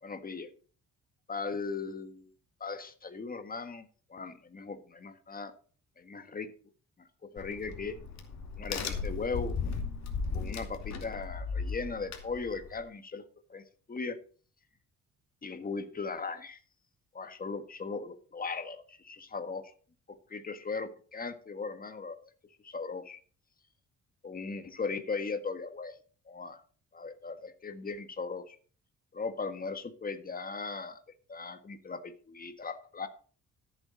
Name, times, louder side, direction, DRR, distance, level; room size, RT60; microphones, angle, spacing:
voice 1, 0.0-0.5 1.3-2.3 2.6-5.5 6.0-6.5 7.0-8.0 8.6-9.5 10.3-13.6 13.9-14.2 15.4-16.6 17.1-19.7 20.3-22.3 22.6-23.2 24.2-26.0 26.3-26.6 26.9-28.6 29.1-31.0 31.3-33.1, left 4 dB, 30° left, 9 dB, 1.6 m, -38 dB
Crack, 7.4-12.8, left 5 dB, 60° left, 2.5 m, -36 dB
13.5 x 8.2 x 4.0 m, 0.41 s
cardioid pair, 90°, 30 cm